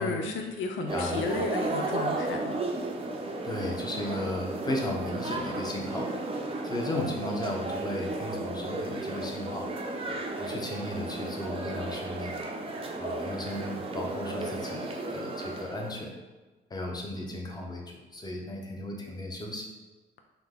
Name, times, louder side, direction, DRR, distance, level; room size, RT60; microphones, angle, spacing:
voice 1, 0.0-2.6, left 4 dB, 75° left, 4 dB, 0.4 m, -33 dB
voice 2, 0.9-1.2 3.4-6.1 6.6-9.7 10.4-12.3 13.0-16.1 16.7-19.6, left 1 dB, 20° left, -1 dB, 0.8 m, -35 dB
sound 1, 0.9-16.0, right 2 dB, 30° right, 0.6 m, -34 dB
3.8 x 2.8 x 3.7 m, 1.2 s
cardioid pair, 90°, 20 cm